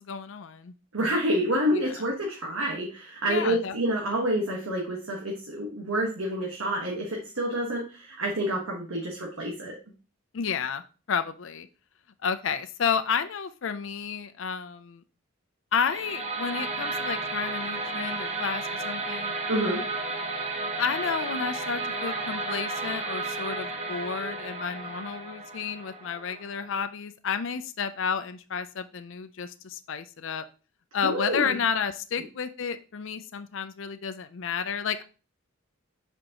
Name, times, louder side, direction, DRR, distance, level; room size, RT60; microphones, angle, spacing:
voice 1, 0.0-0.7 1.7-2.1 3.3-3.7 10.3-10.8 11.1-11.7 12.2-15.0 15.7-19.3 20.8-30.4 30.9-35.0, left 6 dB, 65° left, 10 dB, 0.4 m, -31 dB
voice 2, 0.9-9.7 19.5-19.8 31.0-31.5, right 1 dB, 90° right, -2 dB, 1.3 m, -28 dB
sound 1, 15.8-26.8, right 3 dB, 30° right, 0.8 m, -33 dB
7.7 x 4.4 x 2.9 m, 0.35 s
head